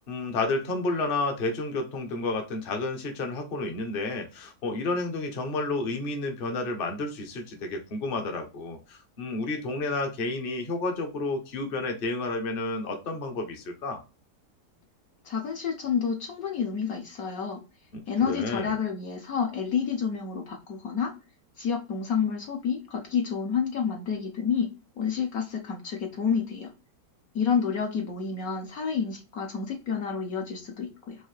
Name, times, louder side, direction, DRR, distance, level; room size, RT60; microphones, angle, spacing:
voice 1, 0.0-14.0 18.3-18.7, left 2 dB, 40° left, 4 dB, 0.9 m, -31 dB
voice 2, 15.2-17.6 18.1-21.1 21.6-24.7 25.0-26.7 27.3-31.2, left 6 dB, 65° left, 3 dB, 1.2 m, -29 dB
4.7 x 2.7 x 3.1 m, 0.30 s
omnidirectional pair, 1.8 m